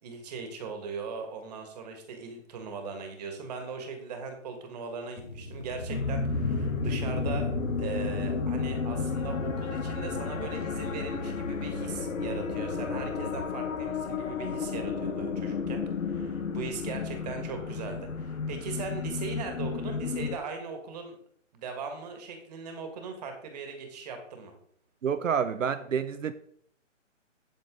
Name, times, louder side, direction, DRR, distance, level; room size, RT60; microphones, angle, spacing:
voice 1, 0.0-7.5 7.8-21.1 21.5-24.5, right 5 dB, 30° right, 5 dB, 1.9 m, -39 dB
sound 1, 5.2-13.4, left 2 dB, 25° left, 2.0 m, -35 dB
sound 2, 5.9-20.4, left 6 dB, 80° left, 1.1 m, -33 dB
voice 2, 25.0-26.3, right 7 dB, 80° right, 11 dB, 0.7 m, -28 dB
9.0 x 8.0 x 3.8 m, 0.64 s
hypercardioid pair, 155°, 38 cm